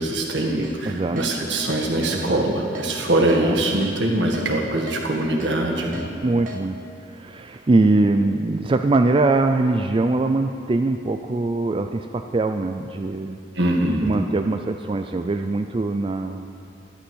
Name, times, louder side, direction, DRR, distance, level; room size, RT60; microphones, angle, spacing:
voice 1, 0.0-6.1 13.5-14.1, right 1 dB, 75° right, -1 dB, 1.9 m, -22 dB
Keyboard (musical), 0.6-0.8 1.2-1.3 1.7-1.8 2.2-2.4 2.8-2.9 3.3-3.4 3.8-3.9 4.3-4.5 4.9-5.0 5.4-5.5 5.9-6.1 6.5-6.6, left 2 dB, 45° right, 1.2 m, -37 dB
voice 2, 0.9-1.2 2.1-2.4 3.4-3.5 6.2-6.8 7.1-13.4 14.0-16.4, right 2 dB, 30° right, 6 dB, 0.4 m, -22 dB
12.5 x 11.5 x 6.4 m, 2.6 s
head